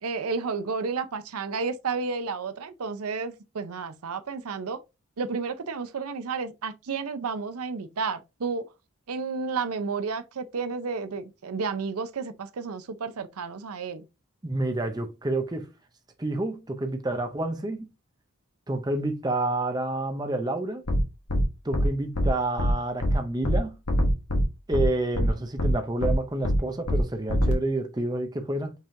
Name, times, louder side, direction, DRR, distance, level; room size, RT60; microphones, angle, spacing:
voice 1, 0.0-4.8 5.2-8.6 9.1-14.1, right 4 dB, 85° right, 0.6 m, -31 dB
voice 2, 14.4-15.7 16.2-17.9 18.7-20.8 21.6-23.8 24.7-28.7, right 2 dB, 20° right, 0.6 m, -29 dB
sound 1, 20.9-21.0 21.3-21.4 21.7-21.9 22.1-22.3 22.6-22.7 23.0-23.1 23.4-23.6 23.9-24.4 24.7-24.8 25.1-25.3 25.6-25.7 26.0-26.1 26.4-26.6 26.9-27.0 27.3-27.5, equal, 80° left, 1.2 m, -23 dB
5.4 x 3.6 x 2.6 m
head